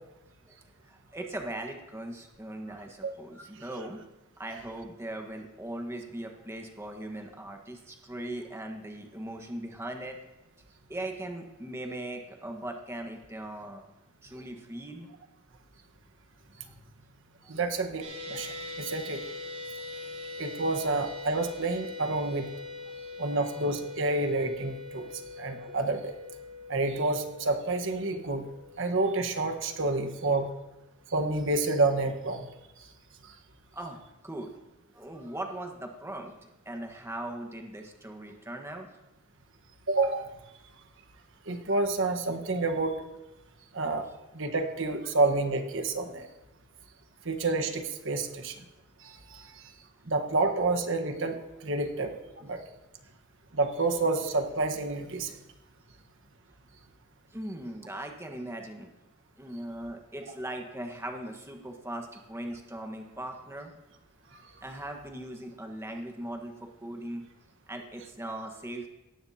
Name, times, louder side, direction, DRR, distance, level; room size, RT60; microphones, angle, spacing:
voice 1, 0.9-4.0 4.4-10.2 10.9-13.8 14.2-15.1 25.7-25.8 33.7-34.5 34.9-38.9 57.3-58.9 59.4-63.7 64.6-67.2 67.7-68.9, right 1 dB, 10° right, 3 dB, 1.3 m, -39 dB
voice 2, 17.5-19.2 20.4-22.5 23.2-25.1 25.4-26.1 26.7-28.4 28.8-30.5 31.1-32.5 39.9-40.3 41.5-43.0 43.7-44.1 44.3-46.3 47.2-48.5 49.0-49.6 50.1-52.6 53.5-55.4, right 2 dB, 65° right, 6 dB, 1.3 m, -29 dB
sound 1, 18.0-30.3, left 3 dB, 35° right, 4.6 m, -42 dB
18.0 x 14.0 x 2.8 m, 1.0 s
head